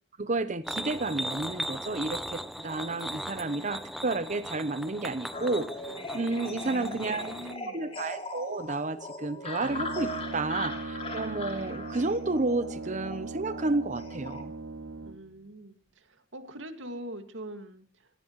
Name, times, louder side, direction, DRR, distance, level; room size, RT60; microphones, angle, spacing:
voice 1, 0.2-5.7 6.1-7.3 7.7-14.5, right 2 dB, 40° right, 12 dB, 0.9 m, -31 dB
sound 1, 0.6-7.6, equal, ahead, 0.8 m, -38 dB
sound 2, 5.3-14.4, left 2 dB, 35° left, 2.9 m, -40 dB
voice 2, 6.6-8.0 15.1-17.9, right 1 dB, 90° right, 6 dB, 2.2 m, -43 dB
Brass instrument, 9.6-15.4, right 3 dB, 75° right, 1.0 m, -39 dB
27.0 x 16.5 x 3.2 m, 0.42 s
head